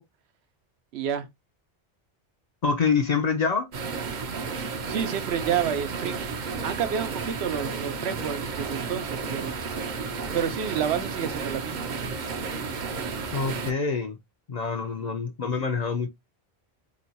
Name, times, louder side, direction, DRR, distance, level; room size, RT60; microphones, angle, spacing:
voice 1, 0.9-1.3 4.9-6.3 6.6-9.6 10.3-11.9, right 8 dB, 80° right, 0.9 m, -29 dB
voice 2, 2.6-3.7 13.3-14.2 14.5-16.1, left 5 dB, 55° left, 0.5 m, -26 dB
sound 1, 3.7-13.7, right 5 dB, 55° right, 0.7 m, -32 dB
3.0 x 2.2 x 3.9 m
omnidirectional pair, 1.1 m